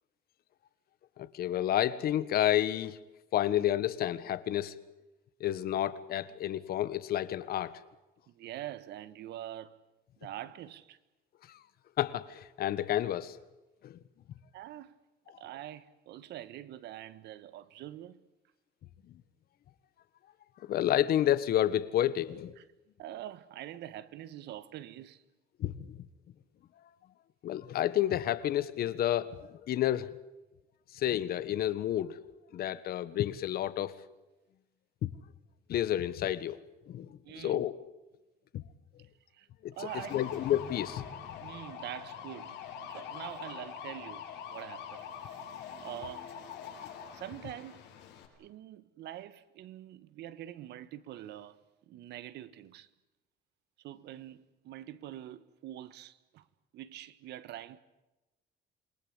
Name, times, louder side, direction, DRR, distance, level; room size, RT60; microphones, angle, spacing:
voice 1, 1.2-3.0 3.3-4.7 5.4-7.8 12.0-13.4 13.8-14.0 20.7-22.5 25.6-26.0 27.4-30.1 30.9-32.2 32.5-33.9 35.0-35.1 35.7-36.6 36.9-37.7 38.5-38.6 39.6-39.7 40.1-41.0, left 12 dB, 60° left, 1.5 m, -30 dB
voice 2, 8.3-9.8 10.2-11.0 14.5-14.9 15.4-18.2 22.6-22.7 23.0-25.2 37.2-37.7 39.3-40.3 41.4-45.0 45.8-46.3 47.1-47.9 48.4-51.6 51.9-52.9 53.8-56.5 56.7-57.8, right 12 dB, 75° right, 1.6 m, -45 dB
sound 1, 39.8-48.3, left 8 dB, 80° left, 6.6 m, -44 dB
28.0 x 22.0 x 8.3 m
cardioid pair, 155°, 18 cm